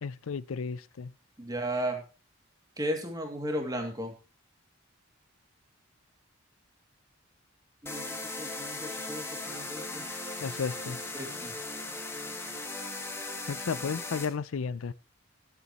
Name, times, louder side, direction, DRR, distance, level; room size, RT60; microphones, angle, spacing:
voice 1, 0.0-1.1 10.4-11.0 13.5-14.9, left 5 dB, 75° left, 0.5 m, -33 dB
voice 2, 1.4-2.0 2.8-4.1 7.8-10.0 11.1-11.5, right 1 dB, 20° right, 2.4 m, -35 dB
sound 1, 7.9-14.3, left 2 dB, 10° left, 1.7 m, -38 dB
18.5 x 8.3 x 3.0 m
head